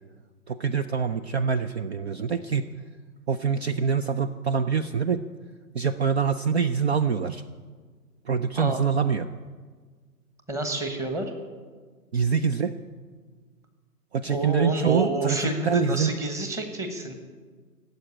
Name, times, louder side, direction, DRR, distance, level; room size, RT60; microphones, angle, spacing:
voice 1, 0.5-2.7 3.3-5.2 5.7-7.4 8.3-9.3 12.1-12.7 14.1-15.4 15.6-16.1, right 6 dB, 45° right, 12 dB, 0.6 m, -25 dB
voice 2, 8.5-8.9 10.5-11.3 14.3-17.1, right 2 dB, 5° right, 6 dB, 1.1 m, -28 dB
17.0 x 7.9 x 9.8 m, 1.5 s
hypercardioid pair, 140°, 47 cm